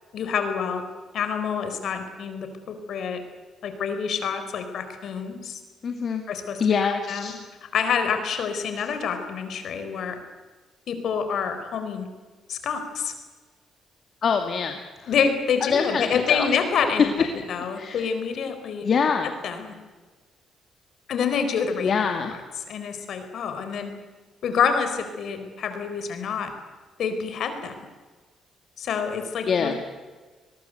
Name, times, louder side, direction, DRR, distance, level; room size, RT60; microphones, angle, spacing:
voice 1, 0.1-0.8 1.1-3.2 3.6-5.6 6.3-6.6 7.1-7.3 7.7-10.2 10.9-12.1 12.5-13.1 15.1-18.9 19.2-19.7 21.1-21.9 22.3-24.0 24.4-26.5 27.0-27.7 28.8-29.7, left 6 dB, 70° left, 8 dB, 4.5 m, -27 dB
voice 2, 5.8-6.2 6.6-7.3 14.2-15.1 15.7-16.5 17.8-18.1 18.8-19.3 21.8-22.4 29.5-29.7, left 6 dB, 50° left, 4 dB, 2.3 m, -24 dB
24.0 x 21.0 x 8.1 m, 1.4 s
cardioid pair, 90°, 0 cm